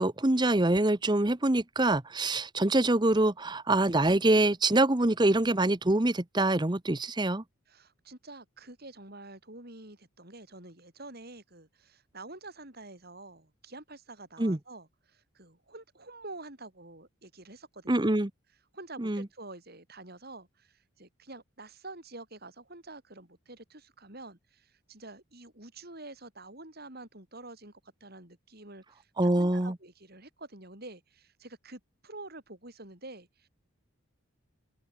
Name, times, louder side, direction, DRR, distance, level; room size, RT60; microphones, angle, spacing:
voice 1, 0.0-7.4 14.4-14.6 17.9-18.3 19.0-19.3 29.2-29.8, right 2 dB, 20° right, 0.9 m, -25 dB
voice 2, 7.7-18.2 18.7-33.5, right 2 dB, 45° right, 5.0 m, -48 dB
open air
head